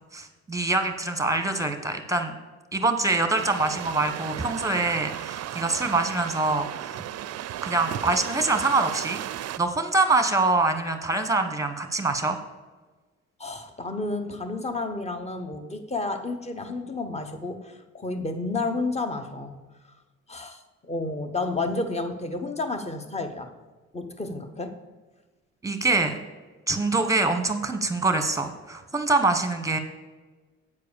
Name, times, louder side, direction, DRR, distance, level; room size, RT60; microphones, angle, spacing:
voice 1, 0.1-2.3 2.7-7.0 7.6-12.4 25.6-26.2 26.7-29.8, right 3 dB, 10° right, 8 dB, 1.1 m, -25 dB
sound 1, 3.3-9.6, right 12 dB, 55° right, 0.4 m, -35 dB
voice 2, 13.4-19.5 20.3-23.5 23.9-24.7, left 3 dB, 20° left, 7 dB, 1.0 m, -31 dB
8.4 x 4.7 x 6.9 m, 1.3 s
cardioid pair, 90°, 30 cm